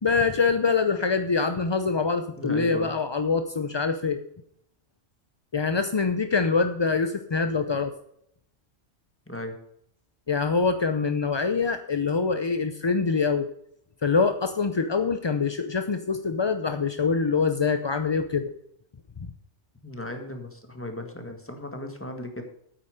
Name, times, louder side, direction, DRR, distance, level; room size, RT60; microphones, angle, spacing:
voice 1, 0.0-4.2 5.5-7.9 10.3-13.5 14.0-18.5, left 4 dB, 35° left, 8 dB, 0.4 m, -24 dB
voice 2, 2.3-2.9 9.3-9.5 19.8-22.4, left 1 dB, 10° left, 4 dB, 1.7 m, -36 dB
9.0 x 8.7 x 6.5 m, 0.71 s
omnidirectional pair, 1.2 m